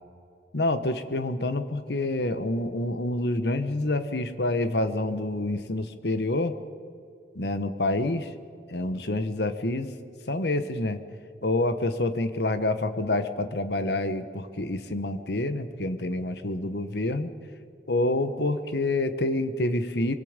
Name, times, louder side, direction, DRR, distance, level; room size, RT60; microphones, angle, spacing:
voice 1, 0.5-6.5 7.3-8.3 8.7-9.9 10.3-11.0 11.4-17.3 17.9-20.2, left 2 dB, 70° left, 10 dB, 1.2 m, -27 dB
25.0 x 22.5 x 5.2 m, 2.4 s
head